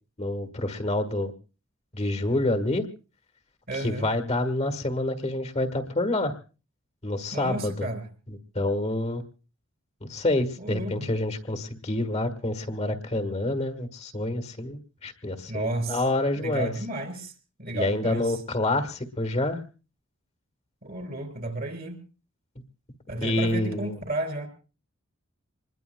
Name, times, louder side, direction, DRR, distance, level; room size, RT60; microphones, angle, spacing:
voice 1, 0.2-1.3 1.9-2.9 3.7-6.4 7.0-7.9 8.3-9.2 10.1-16.7 17.7-19.6 23.2-24.0, left 1 dB, 30° left, 7 dB, 1.5 m, -27 dB
voice 2, 3.7-4.1 7.3-8.0 10.6-10.9 15.5-16.0 16.3-17.3 17.6-18.4 20.8-22.0 23.1-24.5, right 2 dB, 45° right, 6 dB, 3.5 m, -32 dB
26.5 x 21.0 x 2.2 m, 0.35 s
head